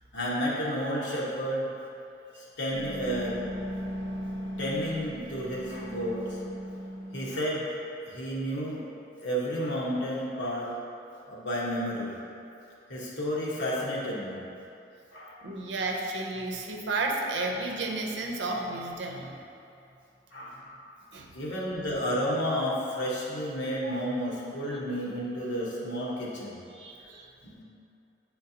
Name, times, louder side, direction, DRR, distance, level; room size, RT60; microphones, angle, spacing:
voice 1, 0.1-1.7 2.4-3.4 4.6-6.4 7.1-7.7 8.1-8.8 9.2-10.7 11.3-12.2 12.9-14.4 15.1-15.4 20.3-20.7 21.3-26.6 27.4-27.6, equal, 90° left, -6 dB, 1.3 m, -31 dB
sound 1, 2.7-7.3, equal, 50° left, 1.0 m, -37 dB
voice 2, 15.4-19.4 21.1-21.3 25.1-25.3 26.7-27.3, right 2 dB, 85° right, 1 dB, 0.7 m, -32 dB
7.8 x 4.4 x 2.8 m, 2.7 s
head